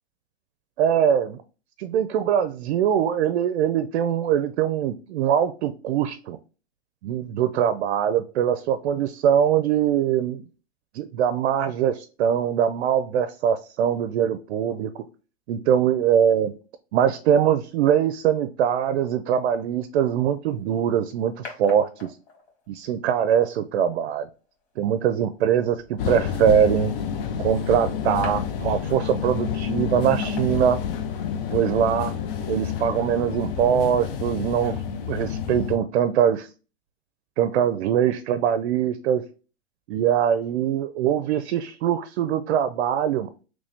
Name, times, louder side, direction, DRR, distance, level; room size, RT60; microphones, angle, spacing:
voice 1, 0.8-1.4 1.8-6.4 7.0-10.4 10.9-15.0 15.5-16.5 16.9-22.1 22.7-24.3 24.8-26.9 27.4-30.8 31.5-32.1 32.5-36.5 37.4-39.2 39.9-43.3, right 9 dB, 80° right, 10 dB, 0.5 m, -22 dB
sound 1, 20.5-31.5, left 3 dB, 90° left, 1.9 m, -47 dB
sound 2, 26.0-35.8, left 8 dB, 55° left, 0.6 m, -29 dB
3.1 x 2.6 x 3.4 m, 0.35 s
supercardioid pair, 140°, 32 cm